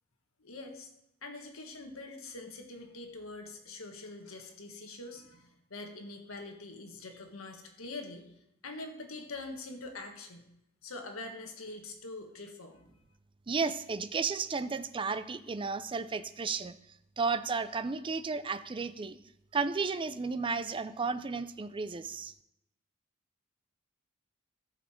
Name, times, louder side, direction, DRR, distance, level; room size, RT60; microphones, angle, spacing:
voice 1, 0.4-0.9 1.2-8.3 8.6-10.5 10.8-12.8, left 2 dB, 85° left, 4 dB, 1.6 m, -44 dB
voice 2, 13.5-16.8 17.2-19.2 19.5-22.3, right 4 dB, 25° right, 12 dB, 0.4 m, -33 dB
13.5 x 6.6 x 4.4 m, 0.82 s
head